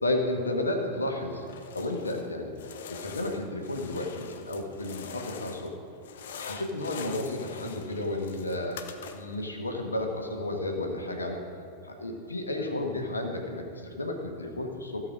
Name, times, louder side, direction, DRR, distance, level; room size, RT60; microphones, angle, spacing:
voice 1, 0.0-1.4 1.7-2.5 2.9-5.7 6.3-8.8 9.1-11.4 11.8-15.1, left 1 dB, 80° left, 2 dB, 1.5 m, -32 dB
sound 1, 1.4-2.3 2.6-5.7 6.0-9.4, left 6 dB, 60° left, 0.7 m, -43 dB
15.5 x 5.6 x 6.3 m, 2.6 s
figure-of-eight pair, 90°, 0 cm